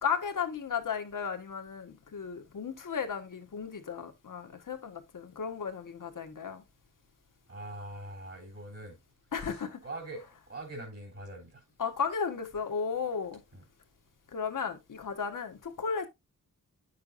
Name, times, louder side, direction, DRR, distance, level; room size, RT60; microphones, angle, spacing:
voice 1, 0.0-6.6 9.3-9.8 11.8-13.4 14.3-16.1, left 6 dB, 65° left, 1.5 m, -34 dB
voice 2, 7.5-9.0 9.4-11.6 13.5-13.6, right 1 dB, 45° right, 3.3 m, -43 dB
9.6 x 6.7 x 2.6 m
wide cardioid pair, 115°, 34 cm